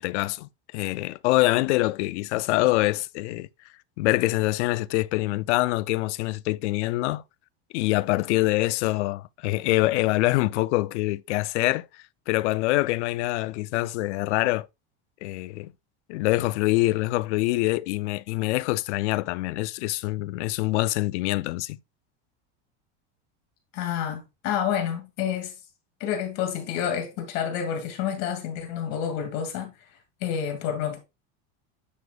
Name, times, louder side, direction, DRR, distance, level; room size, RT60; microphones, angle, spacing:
voice 1, 0.0-3.5 4.0-7.2 7.7-14.7 15.2-15.7 16.1-21.8, left 19 dB, 85° left, 0.6 m, -25 dB
voice 2, 23.7-25.5 26.0-29.7 30.2-31.0, left 8 dB, 50° left, 2.4 m, -29 dB
9.7 x 7.0 x 2.4 m
supercardioid pair, 165°, 34 cm